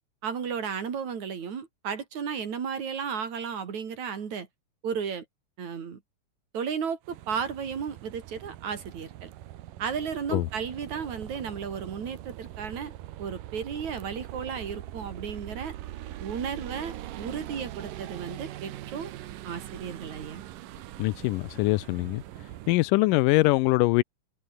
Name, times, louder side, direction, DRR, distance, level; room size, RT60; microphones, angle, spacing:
voice 1, 0.2-4.5 4.8-5.2 5.6-6.0 6.5-9.3 9.8-12.9 13.2-15.7 16.2-19.1 19.4-20.4, right 6 dB, 60° right, 4.0 m, -34 dB
sound 1, 7.0-22.8, right 14 dB, 85° right, 2.8 m, -42 dB
voice 2, 21.0-22.2 22.7-24.0, left 20 dB, 90° left, 2.3 m, -23 dB
omnidirectional pair, 3.7 m